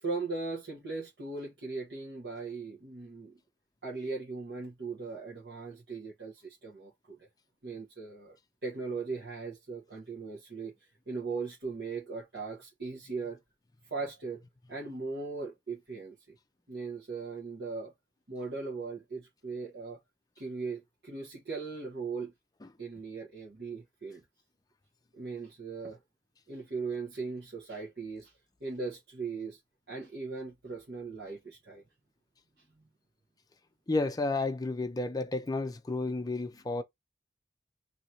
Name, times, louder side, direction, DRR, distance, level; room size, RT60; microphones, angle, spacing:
voice 1, 0.0-3.3 3.8-7.3 7.6-8.4 8.6-10.7 11.1-13.4 13.9-14.4 14.7-16.3 16.7-17.9 18.3-20.0 20.4-22.3 22.8-24.2 25.2-26.0 26.5-28.3 28.6-29.6 29.9-31.8 32.8-32.9, right 4 dB, 65° right, 1.1 m, -38 dB
voice 2, 33.9-36.8, left 3 dB, 20° left, 0.5 m, -31 dB
2.8 x 2.6 x 4.3 m
head